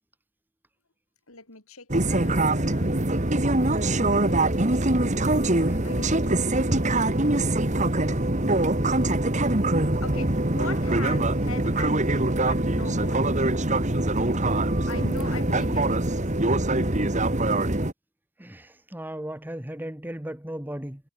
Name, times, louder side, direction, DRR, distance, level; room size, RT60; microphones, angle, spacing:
voice 1, 1.3-2.9 3.5-6.4 6.7-8.7 10.0-13.3 14.9-16.2, left 3 dB, 85° left, 7.6 m, -42 dB
sound 1, 1.9-17.9, right 2 dB, 35° right, 2.2 m, -23 dB
voice 2, 18.9-21.0, right 1 dB, 10° right, 1.3 m, -35 dB
head